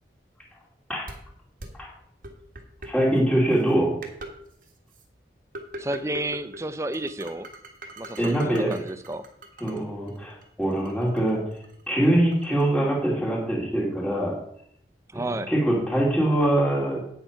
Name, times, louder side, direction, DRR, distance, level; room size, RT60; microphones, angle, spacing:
sound 1, 1.1-1.2 1.6-1.7 2.2-2.9 3.6-3.7 4.0-4.3 4.6-5.0 5.5-6.6 6.9-9.8 10.1-12.6, right 1 dB, 50° right, 1.5 m, -41 dB
voice 1, 2.8-4.0 8.2-8.8 9.6-11.4 11.9-14.4 15.1-17.1, right 1 dB, 5° left, -3 dB, 2.4 m, -23 dB
voice 2, 5.8-7.5 8.0-9.3 15.1-15.5, right 1 dB, 15° right, 13 dB, 0.5 m, -31 dB
9.1 x 7.0 x 5.8 m, 0.70 s
head